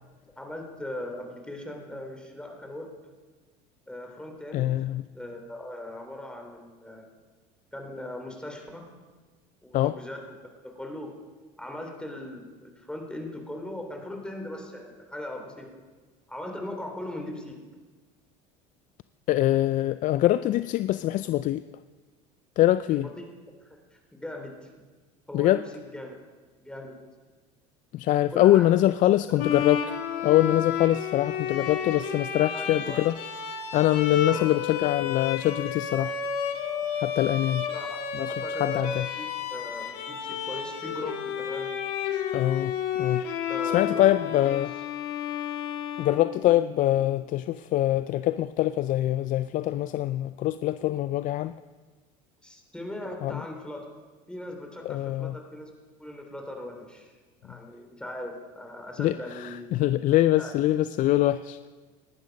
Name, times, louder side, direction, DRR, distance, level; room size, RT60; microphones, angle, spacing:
voice 1, 0.4-2.9 3.9-4.7 5.1-7.1 7.7-8.9 9.6-10.2 10.6-11.1 11.6-15.7 16.3-17.6 22.9-23.2 23.6-24.7 25.3-26.2 26.6-27.0 28.3-28.8 29.3-29.4 32.5-33.0 34.3-34.6 37.4-38.8 39.2-41.7 43.5-44.4 52.4-53.9 54.3-55.7 56.0-57.1 57.4-59.7 60.4-60.5, left 1 dB, 5° left, 2 dB, 3.4 m, -39 dB
voice 2, 4.5-5.0 9.7-9.9 19.3-21.6 22.6-23.1 25.3-25.6 27.9-29.8 30.2-33.2 33.7-36.2 37.0-37.7 38.1-38.3 38.6-39.1 42.3-42.7 43.0-43.2 43.7-44.7 46.0-51.5 53.2-53.4 54.9-55.4 59.0-61.7, left 14 dB, 50° left, 13 dB, 0.5 m, -24 dB
Bowed string instrument, 29.4-46.8, left 7 dB, 70° left, 1.9 m, -31 dB
19.0 x 12.0 x 5.3 m, 1.4 s
supercardioid pair, 90°, 17 cm